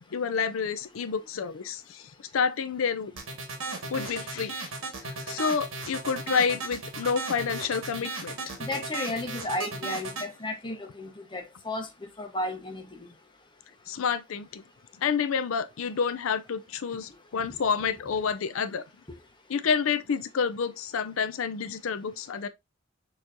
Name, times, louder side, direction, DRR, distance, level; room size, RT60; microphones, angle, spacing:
voice 1, 0.1-3.1 3.9-4.7 5.0-8.6 13.9-14.6 15.0-18.8 19.5-22.5, left 6 dB, 85° left, 0.5 m, -29 dB
sound 1, 3.2-10.3, right 3 dB, 80° right, 1.6 m, -35 dB
voice 2, 8.6-11.9 12.2-13.1, left 2 dB, 25° left, 1.1 m, -33 dB
6.6 x 3.0 x 2.6 m
head